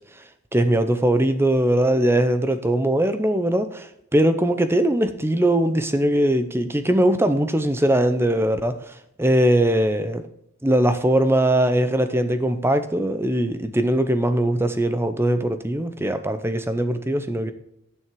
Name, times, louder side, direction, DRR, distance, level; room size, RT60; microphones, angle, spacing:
voice 1, 0.5-10.2 10.6-17.5, right 1 dB, 10° right, 0.7 m, -21 dB
11.0 x 6.3 x 4.6 m
head